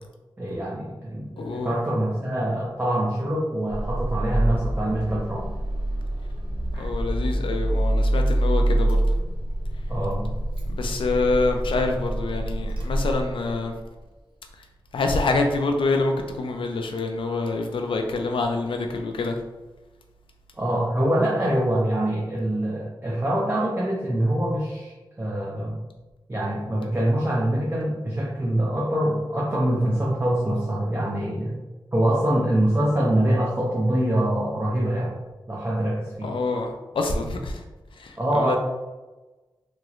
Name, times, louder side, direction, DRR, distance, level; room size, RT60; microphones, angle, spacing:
voice 1, 0.4-5.5 6.7-6.9 9.9-10.3 20.6-25.8 26.3-31.6 31.9-35.1 35.5-36.3 38.2-38.6, right 1 dB, 25° right, -5 dB, 0.5 m, -24 dB
voice 2, 1.4-1.7 6.8-9.0 10.8-13.7 14.9-19.4 36.2-37.6 38.0-38.6, left 3 dB, 85° left, 4 dB, 0.3 m, -26 dB
Car / Engine starting, 3.7-13.7, right 1 dB, 80° right, 0.6 m, -26 dB
3.0 x 2.9 x 2.4 m, 1.1 s
wide cardioid pair, 100°, 9 cm